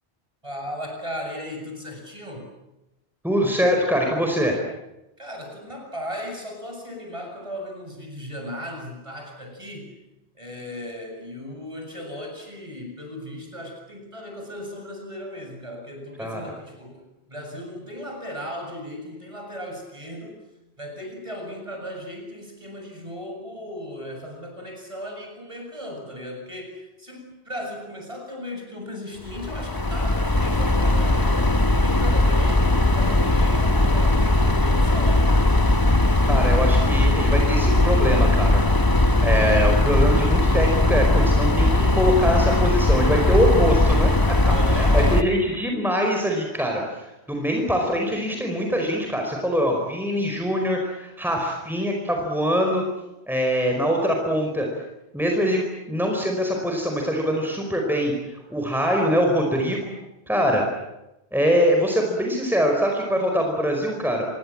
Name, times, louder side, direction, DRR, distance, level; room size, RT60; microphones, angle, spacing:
voice 1, 0.4-2.5 5.2-9.9 10.3-20.4 20.8-35.5 44.4-45.2, equal, 30° right, 3 dB, 7.7 m, -36 dB
voice 2, 3.2-4.5 16.2-16.4 36.2-38.6 39.2-44.1 44.4-46.8 47.3-52.8 53.3-54.7 55.1-58.1 58.5-59.9 60.3-60.6 61.3-64.3, equal, ahead, 1 dB, 4.9 m, -23 dB
sound 1, 29.3-45.2, left 2 dB, 20° left, 1.3 m, -19 dB
27.0 x 23.5 x 8.8 m, 0.95 s
omnidirectional pair, 1.1 m